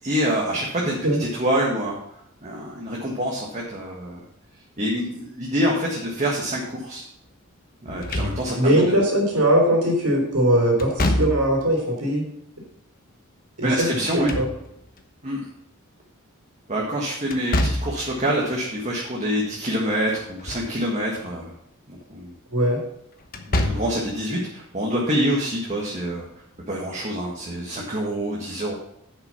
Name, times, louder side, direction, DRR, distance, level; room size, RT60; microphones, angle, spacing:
voice 1, 0.0-2.0 2.4-4.2 4.8-7.0 7.8-9.0 13.6-14.3 15.2-15.4 16.7-21.5 21.9-22.3 23.5-26.2 26.7-28.7, equal, 35° right, -3 dB, 1.6 m, -26 dB
Slam / Thump thud, 7.9-8.8 10.8-11.7 13.9-15.0 17.3-18.1 20.2-20.8 21.1-21.2 23.3-24.1, left 1 dB, 45° left, 1.1 m, -26 dB
voice 2, 8.5-12.2 13.6-14.5 22.5-22.8, right 1 dB, 85° right, -2 dB, 3.2 m, -20 dB
10.5 x 6.0 x 5.8 m, 0.74 s
head